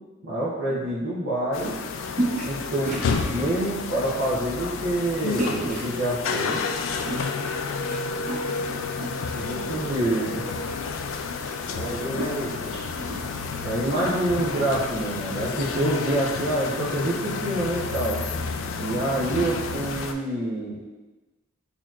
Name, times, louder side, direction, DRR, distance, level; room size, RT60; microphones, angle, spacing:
voice 1, 0.2-1.7 2.4-3.0 3.3-6.6 9.3-10.5 13.6-18.2 18.8-20.8, right 1 dB, 65° right, -9 dB, 0.7 m, -26 dB
sound 1, 1.5-20.1, left 4 dB, 70° left, 0.3 m, -30 dB
sound 2, 2.2-2.6 2.8-3.7 4.2-4.4 5.4-6.0 6.8-8.0 8.2-9.4 9.8-10.5 10.8-10.9 11.1-14.2, right 1 dB, 35° right, 1.2 m, -33 dB
voice 2, 9.8-10.8 11.6-13.1, right 1 dB, 45° left, -7 dB, 1.2 m, -35 dB
4.4 x 2.8 x 2.4 m, 1.1 s
head